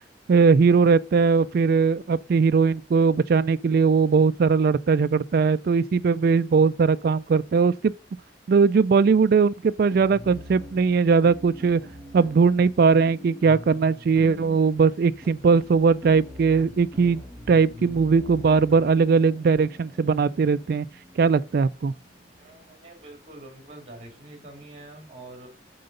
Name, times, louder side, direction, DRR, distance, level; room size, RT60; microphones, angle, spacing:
voice 1, 0.3-7.9 8.5-11.8 12.1-20.9 21.2-21.9, right 5 dB, 55° right, 0.3 m, -20 dB
sound 1, 9.9-22.7, left 1 dB, 5° left, 1.8 m, -44 dB
voice 2, 22.4-25.5, right 2 dB, 35° right, 2.7 m, -45 dB
7.8 x 3.9 x 5.3 m
head